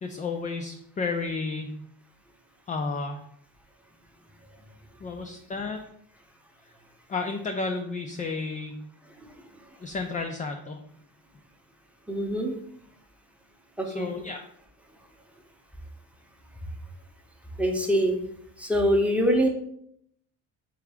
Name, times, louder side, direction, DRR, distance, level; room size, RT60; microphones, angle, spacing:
voice 1, 0.0-1.8 2.7-3.2 5.0-5.8 7.1-8.8 9.8-10.8 13.8-14.4, left 4 dB, 20° left, 4 dB, 0.3 m, -32 dB
voice 2, 12.1-12.6 13.8-14.1 17.6-18.2 18.6-19.5, equal, 5° right, 2 dB, 0.7 m, -24 dB
3.6 x 3.5 x 3.4 m, 0.70 s
cardioid pair, 100°, 38 cm